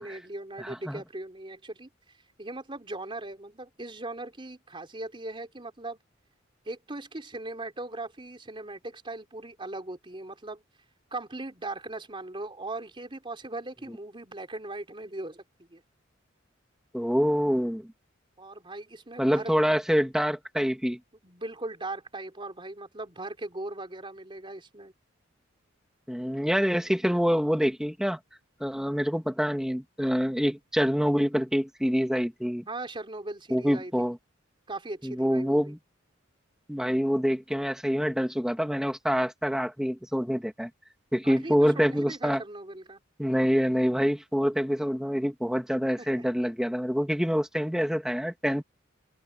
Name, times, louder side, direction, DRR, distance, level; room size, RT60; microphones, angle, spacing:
voice 1, 0.0-1.9 2.4-6.0 6.7-10.6 11.1-15.8 18.4-19.5 21.2-24.9 32.7-34.1 34.7-35.8 41.2-43.0 46.0-46.2, right 2 dB, 25° right, 3.7 m, -39 dB
voice 2, 0.6-1.0 16.9-17.9 19.2-21.0 26.1-28.2 28.6-32.6 33.5-34.2 35.0-35.8 36.7-40.7 41.1-42.4 43.2-48.6, equal, 5° right, 2.8 m, -26 dB
head